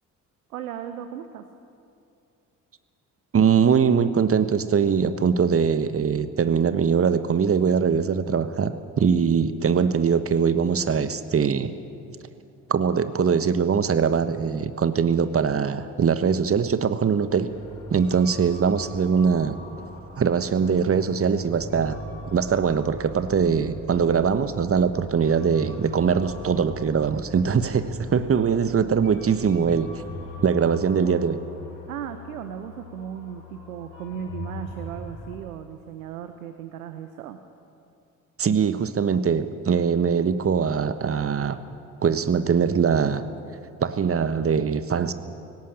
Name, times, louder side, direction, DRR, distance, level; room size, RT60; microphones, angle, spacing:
voice 1, 0.5-1.5 31.9-37.4, right 9 dB, 80° right, 9 dB, 0.9 m, -36 dB
voice 2, 3.3-11.7 12.7-17.5 17.9-19.6 20.2-22.0 22.3-29.9 30.4-31.4 38.4-41.6 42.0-43.2 43.8-45.1, right 6 dB, 30° right, 12 dB, 1.3 m, -22 dB
sound 1, 17.3-35.4, left 2 dB, 65° left, 4.5 m, -41 dB
18.5 x 17.5 x 8.9 m, 2.6 s
figure-of-eight pair, 45°, 42 cm